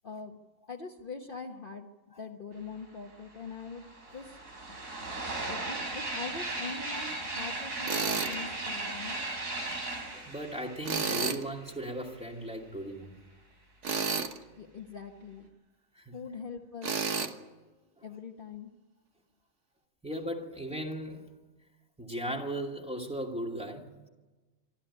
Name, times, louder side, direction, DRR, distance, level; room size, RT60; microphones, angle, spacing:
voice 1, 0.0-0.4 0.7-1.9 2.2-3.8 4.1-4.4 5.4-9.2 14.6-15.5 16.1-17.1 18.0-18.7, left 4 dB, 45° left, 1.3 m, -42 dB
sound 1, 3.1-3.2 3.4-12.0, right 2 dB, 85° right, 3.7 m, -37 dB
Tools, 7.9-8.3 10.8-11.4 13.8-14.4 16.8-17.3, right 5 dB, 65° right, 1.6 m, -30 dB
voice 2, 10.1-13.2 16.0-16.2 18.0-18.1 20.0-21.4 22.0-24.1, right 1 dB, 5° right, 2.6 m, -37 dB
25.0 x 13.0 x 9.9 m
omnidirectional pair, 1.4 m